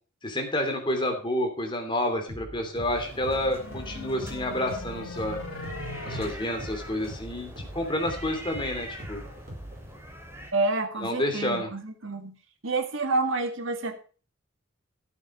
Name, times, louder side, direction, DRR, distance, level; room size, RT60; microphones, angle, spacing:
voice 1, 0.2-5.4 6.0-9.2 11.0-11.7, left 1 dB, 25° left, 3 dB, 3.1 m, -29 dB
sound 1, 2.3-9.9, equal, 45° right, 4.5 m, -42 dB
sound 2, 2.8-10.5, equal, 10° right, 3.0 m, -44 dB
sound 3, 3.0-6.3, left 2 dB, 90° left, 2.8 m, -40 dB
voice 2, 10.5-12.3 12.6-14.0, right 3 dB, 70° right, 7 dB, 2.0 m, -28 dB
13.5 x 8.1 x 5.0 m, 0.38 s
head